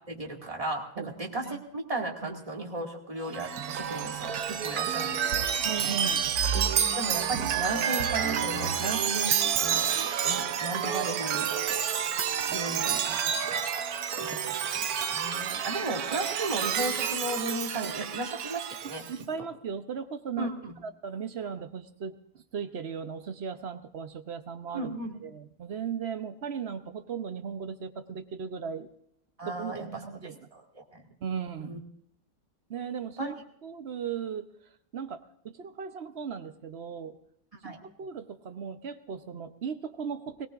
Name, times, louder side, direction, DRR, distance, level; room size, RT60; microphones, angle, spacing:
voice 1, 0.1-5.5 7.0-11.5 12.5-13.7 14.2-14.4 14.7-19.3 20.4-20.7 24.7-25.1 29.4-30.0 30.5-31.1 31.6-31.8 33.2-33.3 37.6-37.8, right 2 dB, 25° right, -1 dB, 2.2 m, -35 dB
Chime, 3.3-19.1, right 8 dB, 85° right, 1.3 m, -29 dB
voice 2, 5.6-6.3 18.8-20.5 20.8-24.9 25.2-28.9 29.5-30.4 31.2-31.8 32.7-33.3 33.6-34.5 34.9-37.2 37.6-40.5, right 7 dB, 50° right, 10 dB, 1.0 m, -37 dB
21.5 x 18.5 x 2.5 m, 0.73 s
omnidirectional pair, 1.5 m